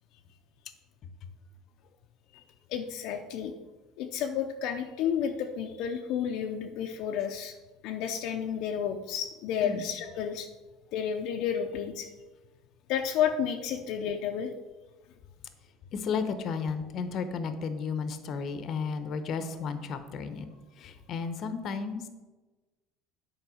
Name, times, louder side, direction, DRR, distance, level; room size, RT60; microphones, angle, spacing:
voice 1, 2.7-3.5 4.0-7.5 7.8-10.5 10.9-12.1 12.9-14.5, left 8 dB, 60° left, 3 dB, 0.6 m, -31 dB
voice 2, 15.9-20.5 20.8-22.1, left 5 dB, 45° left, 10 dB, 0.9 m, -33 dB
9.7 x 4.5 x 6.3 m, 1.2 s
cardioid pair, 145°, 0 cm